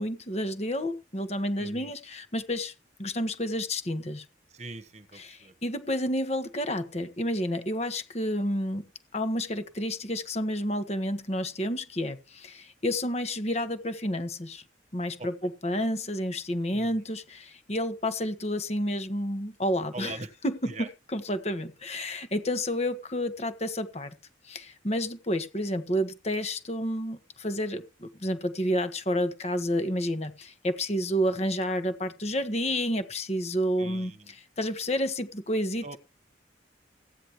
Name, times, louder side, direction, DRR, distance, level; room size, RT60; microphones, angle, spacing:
voice 1, 0.0-2.7 3.0-4.2 5.2-8.8 9.1-14.6 14.9-24.1 24.4-36.0, equal, 35° left, 1.4 m, -30 dB
voice 2, 1.6-1.9 4.5-5.5 15.2-15.5 16.7-17.0 19.9-20.3 20.6-20.9 33.8-34.3 35.8-36.0, right 3 dB, 35° right, 1.3 m, -42 dB
16.0 x 9.8 x 3.1 m
head